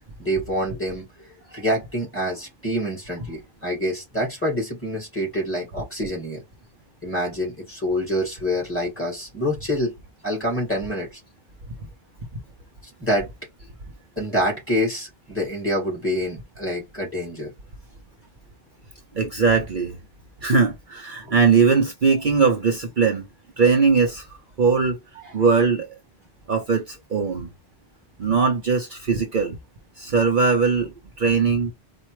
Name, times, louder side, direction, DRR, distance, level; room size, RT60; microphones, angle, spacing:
voice 1, 0.2-6.4 7.0-9.9 10.2-11.2 13.0-13.3 14.2-17.5 21.2-21.3 25.2-25.4, equal, 10° left, 2.5 m, -26 dB
voice 2, 19.1-20.0 20.4-23.3 23.6-24.3 24.6-25.0 25.3-25.9 26.5-27.5 28.2-29.6 30.0-31.7, right 5 dB, 50° right, 0.9 m, -20 dB
4.4 x 2.5 x 4.7 m
omnidirectional pair, 1.1 m